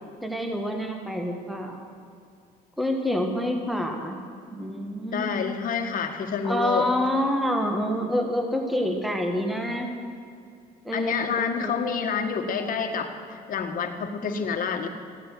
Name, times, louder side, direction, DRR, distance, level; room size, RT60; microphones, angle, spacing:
voice 1, 0.2-1.8 2.8-4.2 4.5-5.3 6.4-9.9 10.9-11.8, equal, ahead, 3 dB, 1.8 m, -27 dB
voice 2, 5.1-6.9 10.9-14.9, left 6 dB, 55° left, 5 dB, 1.8 m, -28 dB
15.5 x 9.1 x 9.2 m, 2.4 s
cardioid pair, 110°, 17 cm